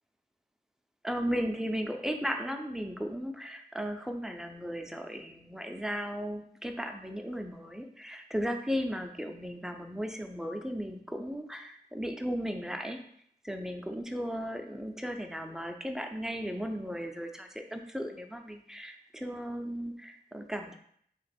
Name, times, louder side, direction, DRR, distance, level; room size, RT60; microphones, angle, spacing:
voice 1, 1.0-13.0 13.4-20.8, equal, 5° right, 4 dB, 0.4 m, -36 dB
3.0 x 2.9 x 4.2 m, 0.64 s
wide cardioid pair, 75°, 16 cm